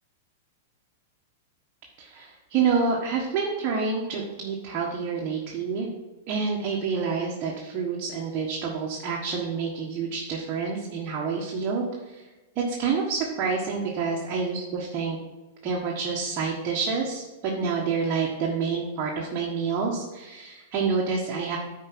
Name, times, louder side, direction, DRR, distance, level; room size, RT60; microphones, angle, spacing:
voice 1, 2.0-5.9 6.3-11.8 12.1-12.2 12.5-15.2 15.6-21.6, right 5 dB, 30° right, -3 dB, 1.4 m, -28 dB
10.0 x 4.7 x 6.1 m, 1.2 s
supercardioid pair, 155°, 0 cm